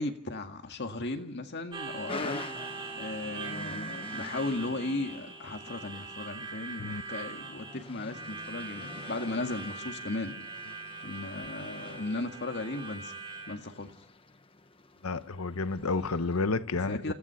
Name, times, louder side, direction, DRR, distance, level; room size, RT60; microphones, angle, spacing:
voice 1, 0.0-2.4 3.0-10.3 11.0-13.2 13.5-13.9 16.9-17.1, left 2 dB, 50° left, 1.9 m, -36 dB
Harmonica, 1.7-13.5, right 4 dB, 20° right, 3.6 m, -42 dB
sound 1, 2.1-16.4, left 2 dB, 25° left, 1.0 m, -47 dB
voice 2, 15.0-17.1, left 3 dB, 75° left, 0.9 m, -30 dB
29.0 x 16.0 x 5.8 m
head